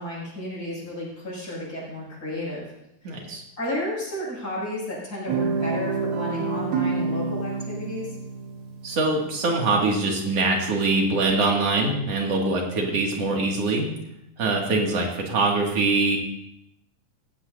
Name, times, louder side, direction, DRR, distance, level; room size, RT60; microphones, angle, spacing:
voice 1, 0.0-2.6 3.0-3.3 3.6-8.1, equal, 25° left, -6 dB, 7.6 m, -32 dB
voice 2, 3.0-3.4 8.8-13.9 14.4-16.2, right 3 dB, 45° right, -1 dB, 3.1 m, -23 dB
Guitar, 5.3-9.6, right 4 dB, 85° right, 3.4 m, -28 dB
19.0 x 15.5 x 2.7 m, 0.83 s
omnidirectional pair, 4.1 m